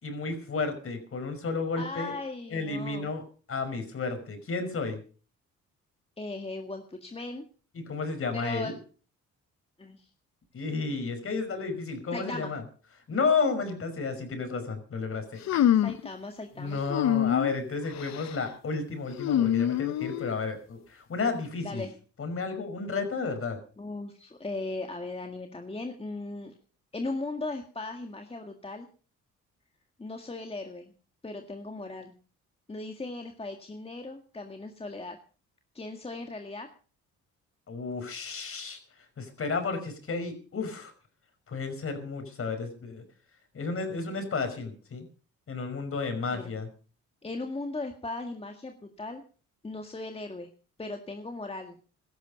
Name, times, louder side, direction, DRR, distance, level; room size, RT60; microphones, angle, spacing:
voice 1, 0.0-2.1 2.5-3.2 3.5-5.0 7.7-8.7 10.5-12.6 13.1-15.6 16.6-21.9 22.2-23.6 37.7-38.8 39.2-40.9 41.5-43.0 43.5-45.0 45.5-46.7, left 4 dB, 45° left, 7 dB, 5.5 m, -32 dB
voice 2, 1.7-3.1 6.2-7.4 8.3-8.7 9.8-10.1 12.1-12.5 15.7-16.8 21.6-21.9 23.8-26.5 26.9-28.9 30.0-30.9 31.2-32.1 32.7-35.2 35.7-36.7 46.3-46.5 47.2-49.2 49.6-50.5 50.8-51.8, left 2 dB, 20° left, 4 dB, 1.9 m, -37 dB
sound 1, 15.5-16.1 16.9-17.6 17.9-18.4 19.2-20.4, left 11 dB, 65° left, 0.8 m, -25 dB
17.0 x 13.0 x 5.3 m, 0.40 s
cardioid pair, 90°, 30 cm